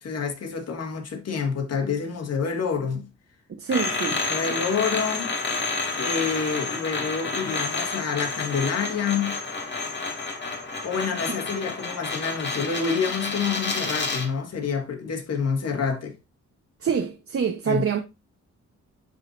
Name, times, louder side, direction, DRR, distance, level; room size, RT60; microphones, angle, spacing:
voice 1, 0.0-3.1 4.2-5.3 6.0-9.4 10.8-16.2 17.7-17.8, left 6 dB, 60° left, 1.8 m, -28 dB
voice 2, 3.6-4.3 16.8-18.0, right 6 dB, 50° right, 1.0 m, -26 dB
sound 1, 3.7-14.3, left 3 dB, 40° left, 2.2 m, -30 dB
10.0 x 4.0 x 2.6 m
cardioid pair, 90°, 29 cm